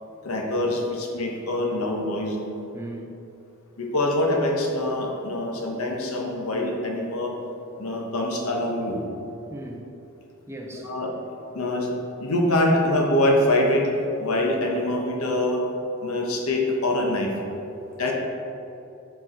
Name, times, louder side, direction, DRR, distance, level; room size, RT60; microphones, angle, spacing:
voice 1, 0.2-2.4 3.8-7.3 7.8-9.0 10.8-11.1 11.5-11.9 12.2-13.9 14.2-15.6 16.0-17.3 18.0-18.1, left 1 dB, 70° left, 0 dB, 1.0 m, -24 dB
voice 2, 2.7-3.2 9.5-9.9 10.5-10.9 18.1-18.2, right 1 dB, 10° right, 1 dB, 0.4 m, -37 dB
6.6 x 4.6 x 4.3 m, 2.9 s
head